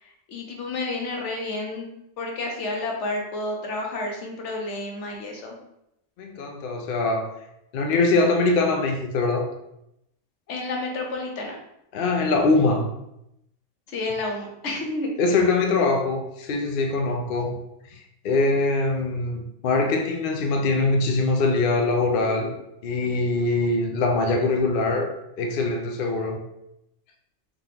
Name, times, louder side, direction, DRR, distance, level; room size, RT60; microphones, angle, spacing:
voice 1, 0.0-1.8 2.2-5.5 10.5-11.6 13.9-15.1, left 2 dB, 75° left, 1 dB, 1.1 m, -30 dB
voice 2, 6.2-7.3 7.7-9.5 11.9-12.9 15.2-17.6 17.9-22.6 22.8-26.4, left 3 dB, 60° left, 3 dB, 0.6 m, -23 dB
3.7 x 3.5 x 2.8 m, 0.83 s
omnidirectional pair, 1.2 m